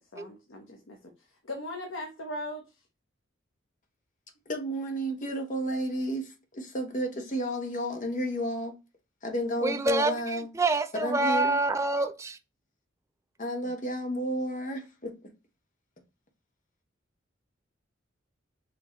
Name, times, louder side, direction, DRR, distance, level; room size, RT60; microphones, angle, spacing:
voice 1, 0.1-1.0 1.4-2.6, left 1 dB, 75° left, 0.9 m, -38 dB
voice 2, 4.5-8.8 9.2-10.5 10.9-11.6 13.4-15.2, equal, 40° left, 1.1 m, -32 dB
voice 3, 9.6-12.4, right 2 dB, 15° right, 0.4 m, -27 dB
5.9 x 2.9 x 3.0 m
head